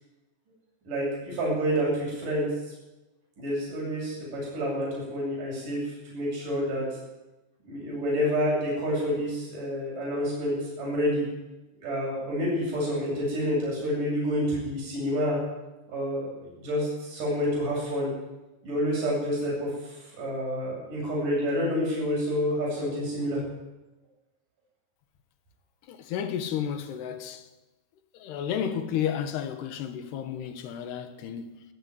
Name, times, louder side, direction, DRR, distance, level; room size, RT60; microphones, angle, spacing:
voice 1, 0.8-2.5 3.4-6.9 7.6-11.3 11.8-15.4 15.9-18.1 18.6-23.4, equal, 55° right, 9.7 m, -28 dB
voice 2, 25.9-27.5 28.1-31.6, left 9 dB, 85° left, 3.6 m, -32 dB
19.0 x 14.0 x 9.8 m
omnidirectional pair, 4.6 m